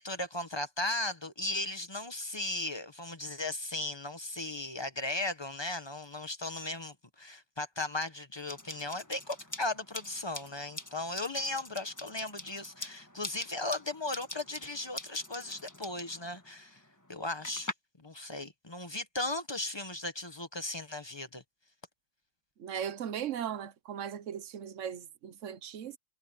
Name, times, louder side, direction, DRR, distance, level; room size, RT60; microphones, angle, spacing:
voice 1, 0.0-16.8 17.1-21.4, left 2 dB, 25° left, 0.6 m, -36 dB
sound 1, 8.5-17.7, left 1 dB, 10° left, 1.4 m, -45 dB
voice 2, 22.6-26.0, right 9 dB, 55° right, 0.9 m, -38 dB
omnidirectional pair, 2.1 m